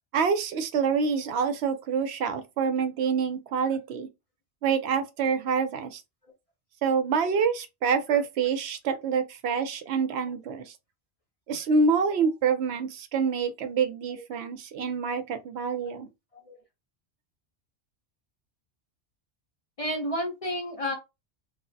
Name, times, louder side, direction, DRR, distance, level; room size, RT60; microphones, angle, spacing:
voice 1, 0.1-4.1 4.6-6.0 6.8-10.7 11.5-16.1, right 5 dB, 75° right, 0.8 m, -26 dB
voice 2, 19.8-21.0, equal, 40° left, 0.6 m, -30 dB
3.1 x 2.0 x 2.6 m
omnidirectional pair, 1.1 m